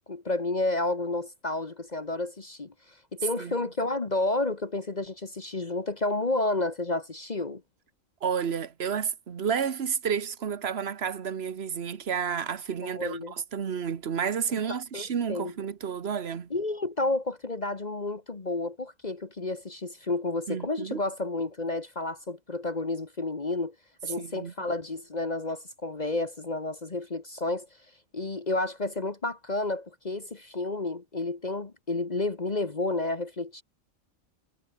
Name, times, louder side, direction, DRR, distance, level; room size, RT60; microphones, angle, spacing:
voice 1, 0.0-2.7 3.1-7.6 12.8-13.3 14.5-15.5 16.5-23.7 24.0-27.7 28.1-33.6, left 2 dB, 35° left, 1.4 m, -31 dB
voice 2, 3.4-3.7 8.2-16.5 20.5-21.0 24.2-24.5, right 7 dB, 50° right, 1.4 m, -31 dB
omnidirectional pair, 1.4 m